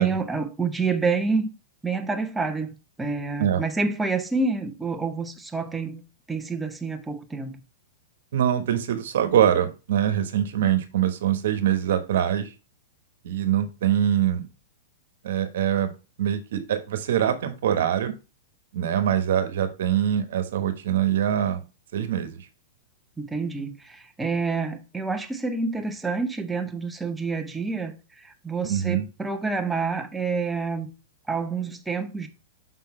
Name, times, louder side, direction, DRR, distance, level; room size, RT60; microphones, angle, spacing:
voice 1, 0.0-1.5 1.8-6.0 6.3-7.6 23.2-30.9 31.3-32.3, right 4 dB, 5° right, 0.8 m, -28 dB
voice 2, 8.3-12.5 13.2-14.5 15.2-15.9 16.2-18.1 18.7-21.6 21.9-22.5 28.6-29.0, right 10 dB, 70° right, 1.1 m, -23 dB
5.8 x 3.8 x 4.3 m
hypercardioid pair, 140°, 0 cm